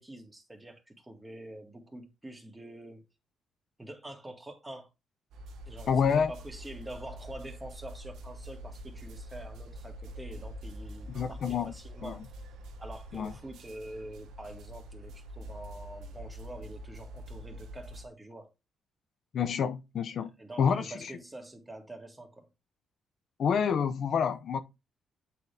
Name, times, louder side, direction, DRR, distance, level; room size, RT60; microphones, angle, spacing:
voice 1, 0.0-3.0 3.8-4.9 5.7-12.3 12.8-18.5 20.4-22.5, right 1 dB, 15° right, 2.0 m, -46 dB
sound 1, 5.3-18.0, equal, 80° right, 1.0 m, -45 dB
voice 2, 5.9-6.3 11.1-11.7 12.0-12.2 13.1-13.3 19.3-20.3 20.6-21.1 23.4-24.6, left 7 dB, 60° left, 0.6 m, -28 dB
8.3 x 3.9 x 3.3 m
cardioid pair, 90°, 0 cm